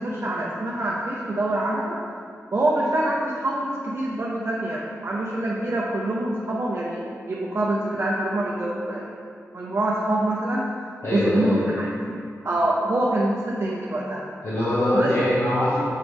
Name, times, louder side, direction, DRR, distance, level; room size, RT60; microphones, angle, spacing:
voice 1, 0.0-2.0 2.5-9.1 9.5-10.6 11.1-11.9 12.4-14.2 14.9-15.1, right 1 dB, 50° right, -5 dB, 0.7 m, -25 dB
voice 2, 11.0-11.6 14.4-15.8, left 1 dB, 65° left, -11 dB, 1.3 m, -22 dB
7.5 x 5.1 x 3.5 m, 2.3 s
wide cardioid pair, 140°, 5 cm